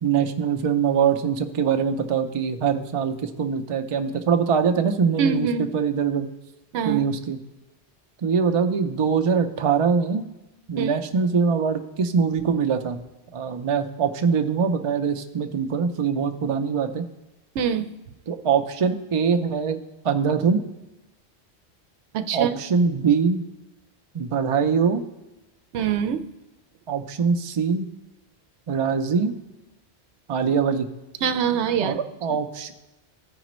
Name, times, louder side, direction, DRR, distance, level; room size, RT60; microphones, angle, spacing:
voice 1, 0.0-6.3 6.8-7.4 8.2-10.3 10.7-13.0 13.3-17.0 18.3-20.6 22.3-23.4 24.1-25.0 26.9-27.9 28.7-29.3 30.3-30.9 31.8-32.7, right 6 dB, 40° right, 6 dB, 0.4 m, -23 dB
voice 2, 5.2-5.7 6.7-7.0 10.8-10.9 17.5-17.9 22.1-22.6 25.7-26.3 31.2-32.0, right 7 dB, 90° right, 9 dB, 0.9 m, -24 dB
14.5 x 5.0 x 3.1 m, 1.0 s
omnidirectional pair, 1.1 m